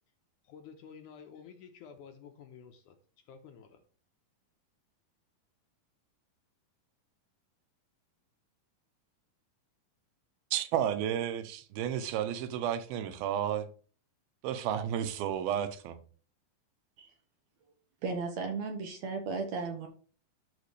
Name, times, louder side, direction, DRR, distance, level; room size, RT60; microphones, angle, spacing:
voice 1, 0.5-3.0 3.3-3.8, left 7 dB, 75° left, 2.0 m, -51 dB
voice 2, 10.5-13.7 14.4-16.0, right 10 dB, 90° right, 2.7 m, -32 dB
voice 3, 18.0-19.9, right 4 dB, 70° right, 1.8 m, -35 dB
13.5 x 5.0 x 3.2 m
omnidirectional pair, 4.2 m